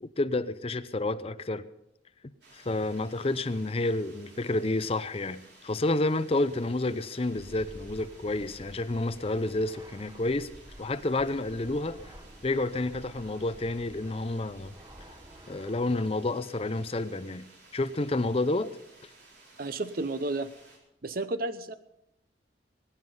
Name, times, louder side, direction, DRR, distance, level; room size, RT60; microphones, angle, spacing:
voice 1, 0.0-1.6 2.5-10.5 10.8-12.0 12.4-14.7 15.5-17.5 17.7-18.7, left 2 dB, 35° left, 13 dB, 0.6 m, -29 dB
sound 1, 2.4-20.8, right 2 dB, 75° right, 4.0 m, -56 dB
Fixed-wing aircraft airplane, 7.2-16.1, equal, 20° right, 1.3 m, -51 dB
voice 2, 19.6-20.5 21.0-21.7, right 2 dB, 55° right, 12 dB, 0.7 m, -32 dB
21.0 x 9.7 x 5.5 m, 0.84 s
head